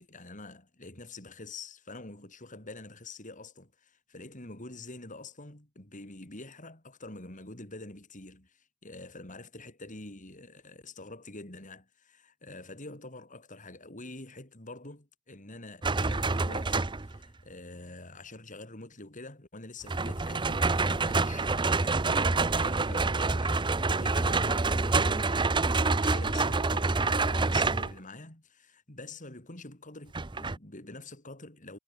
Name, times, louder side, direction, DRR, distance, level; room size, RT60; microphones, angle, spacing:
voice 1, 0.0-31.8, left 2 dB, 35° left, 4.2 m, -46 dB
sound 1, 15.8-17.2 19.9-27.9 30.1-30.6, right 3 dB, 20° right, 0.7 m, -27 dB
head